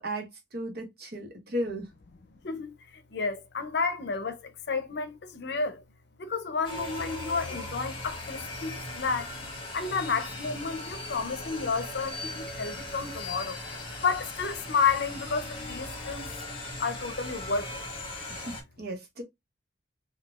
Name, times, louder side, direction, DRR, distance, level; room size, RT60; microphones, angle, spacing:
voice 1, 0.0-1.9 18.3-19.2, right 1 dB, 55° right, 1.0 m, -35 dB
voice 2, 2.4-5.8 6.2-9.3 9.7-13.6 14.0-16.3 16.8-17.9, left 5 dB, 65° left, 0.6 m, -31 dB
sound 1, 6.6-18.6, left 2 dB, 30° left, 1.2 m, -38 dB
4.0 x 2.3 x 2.3 m
head